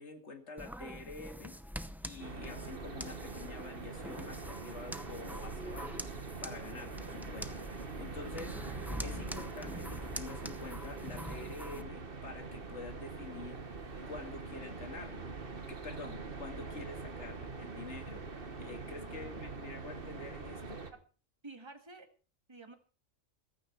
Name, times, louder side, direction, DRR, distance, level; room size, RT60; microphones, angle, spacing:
voice 1, 0.0-1.6 2.0-6.0 6.4-8.6 9.0-13.6 14.1-15.3 15.7-18.2 18.6-20.8, left 3 dB, 55° left, 6 dB, 2.3 m, -47 dB
sound 1, 0.6-11.8, equal, ahead, 0.4 m, -45 dB
sound 2, 2.2-20.9, right 4 dB, 45° right, 1.7 m, -44 dB
voice 2, 18.6-19.7 20.9-21.0 21.4-22.1 22.5-22.7, right 3 dB, 20° right, 6 dB, 1.7 m, -52 dB
15.0 x 13.5 x 4.5 m, 0.37 s
omnidirectional pair, 1.4 m